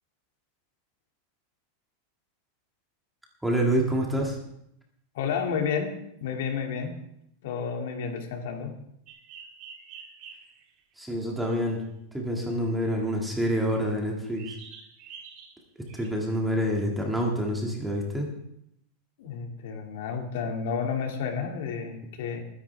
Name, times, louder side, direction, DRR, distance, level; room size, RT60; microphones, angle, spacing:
voice 1, 3.4-4.4 11.0-11.8 12.1-14.5 15.9-18.3, equal, 5° right, -1 dB, 2.0 m, -27 dB
voice 2, 5.1-5.9 6.2-6.9 7.4-8.8 19.2-22.4, left 6 dB, 65° left, 3 dB, 2.2 m, -31 dB
sound 1, 9.1-11.4 14.3-15.5 15.9-16.1, right 6 dB, 40° right, 2.4 m, -47 dB
21.5 x 10.0 x 3.4 m, 0.75 s
supercardioid pair, 170°, 0 cm